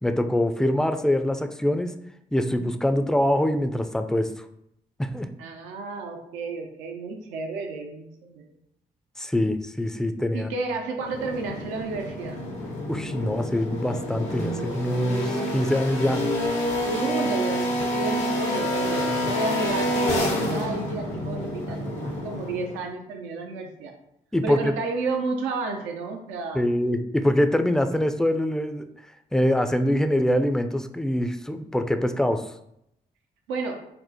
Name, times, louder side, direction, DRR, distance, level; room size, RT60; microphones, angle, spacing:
voice 1, 0.0-1.9 2.3-4.3 5.0-5.3 9.2-10.5 12.9-16.2 19.1-19.3 21.8-22.2 24.3-24.7 26.5-28.9 29.3-32.4, left 1 dB, 5° left, 7 dB, 0.3 m, -24 dB
voice 2, 5.4-8.4 10.3-12.4 16.8-23.9 24.4-26.6 33.5-33.8, right 4 dB, 85° right, 3 dB, 0.4 m, -31 dB
sound 1, 11.0-22.8, left 1 dB, 80° left, 0.8 m, -28 dB
4.3 x 2.1 x 2.7 m, 0.76 s
hypercardioid pair, 40°, 20 cm